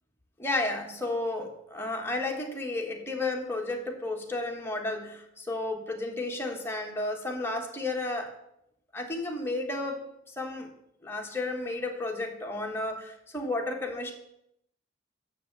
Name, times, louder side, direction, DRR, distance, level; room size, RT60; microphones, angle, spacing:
voice 1, 0.4-8.3 8.9-10.0 10.4-10.7 11.0-14.1, left 2 dB, 15° left, 1 dB, 1.3 m, -32 dB
7.4 x 5.9 x 7.4 m, 0.76 s
head